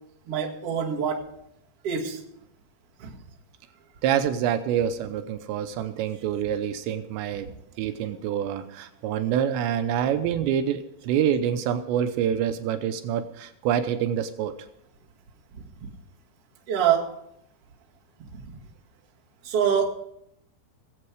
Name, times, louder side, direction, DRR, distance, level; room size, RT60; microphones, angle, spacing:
voice 1, 0.3-1.2 1.8-2.2 3.0-3.1 15.5-15.6 16.7-17.1 19.4-19.9, right 8 dB, 45° right, -2 dB, 2.3 m, -25 dB
voice 2, 4.0-14.6, right 9 dB, 85° right, 9 dB, 3.0 m, -26 dB
20.0 x 7.9 x 4.8 m, 0.77 s
omnidirectional pair, 5.2 m